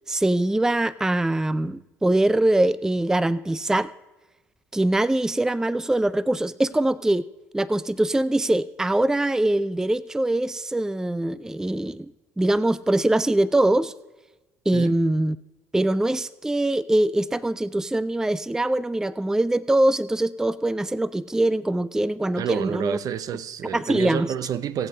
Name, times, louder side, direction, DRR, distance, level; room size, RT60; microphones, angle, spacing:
voice 1, 0.1-3.9 4.7-7.2 7.5-12.1 12.4-13.9 14.7-15.4 15.7-23.0 23.7-24.3, right 1 dB, 5° right, 0.4 m, -23 dB
voice 2, 22.4-24.9, right 8 dB, 55° right, 0.7 m, -29 dB
24.0 x 8.2 x 3.2 m
hypercardioid pair, 55°, 8 cm